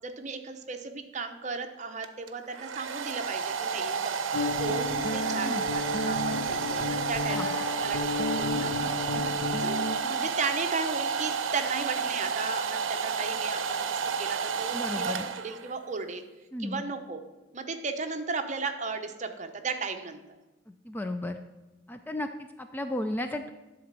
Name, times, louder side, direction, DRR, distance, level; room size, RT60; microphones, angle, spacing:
voice 1, 0.0-8.9 9.6-9.8 10.0-16.2 16.6-17.2 17.5-20.4, right 4 dB, 35° right, 6 dB, 0.8 m, -35 dB
Domestic sounds home sounds, 2.0-15.8, right 6 dB, 85° right, 0.6 m, -31 dB
Guitar, 4.3-10.0, left 3 dB, 60° left, 0.7 m, -32 dB
voice 2, 14.7-15.3 16.5-16.8 20.8-21.4 21.9-23.5, left 1 dB, 10° left, 7 dB, 0.3 m, -34 dB
11.0 x 4.0 x 7.5 m, 1.1 s
head